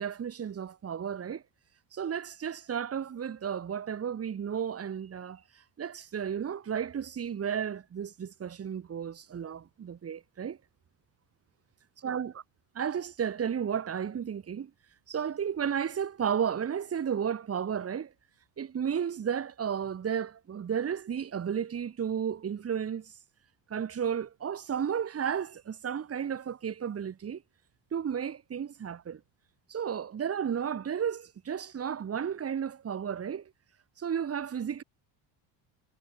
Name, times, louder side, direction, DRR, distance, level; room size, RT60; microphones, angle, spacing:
voice 1, 0.0-1.4 1.9-10.6 12.0-12.3 12.7-14.7 15.1-18.1 18.6-23.1 23.7-27.4 27.9-29.2 29.7-33.5 34.0-34.8, right 8 dB, 30° right, 4.8 m, -33 dB
cardioid pair, 155°, 49 cm